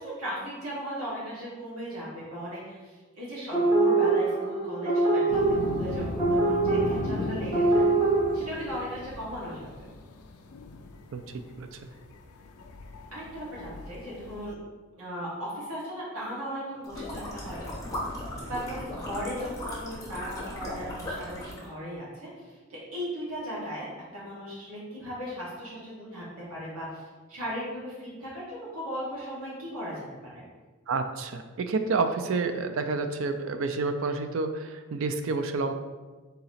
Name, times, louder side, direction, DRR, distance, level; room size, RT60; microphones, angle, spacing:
voice 1, 0.0-7.8 8.3-9.7 13.1-14.6 15.0-18.0 18.5-22.3 22.7-23.9 24.1-26.2 26.5-30.4, equal, 80° right, -7 dB, 1.5 m, -37 dB
sound 1, 3.5-8.3, right 2 dB, 15° right, 1.4 m, -24 dB
sound 2, 5.3-14.5, left 3 dB, 80° left, 0.4 m, -38 dB
voice 2, 11.1-11.9 30.9-35.7, right 3 dB, 60° right, 8 dB, 0.3 m, -29 dB
sound 3, 16.8-21.7, left 1 dB, 15° left, 0.8 m, -37 dB
4.0 x 2.9 x 4.1 m, 1.3 s
head